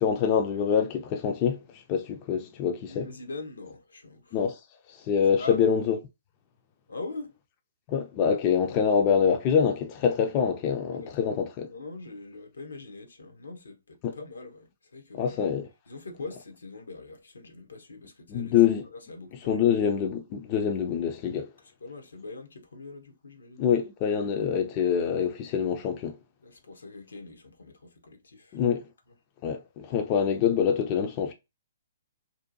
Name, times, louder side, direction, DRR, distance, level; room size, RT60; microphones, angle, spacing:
voice 1, 0.0-3.1 4.3-4.6 4.9-6.0 7.9-11.7 14.0-14.1 15.1-15.7 18.3-18.8 19.3-21.5 23.6-26.2 28.5-28.8 29.4-31.3, left 7 dB, 35° left, 0.4 m, -25 dB
voice 2, 2.9-4.4 5.4-5.6 6.9-7.3 10.6-11.3 11.7-15.4 15.9-18.5 18.9-19.6 21.8-23.6 26.4-28.6, left 3 dB, 80° left, 0.7 m, -42 dB
2.6 x 2.1 x 2.6 m
hypercardioid pair, 125°, 0 cm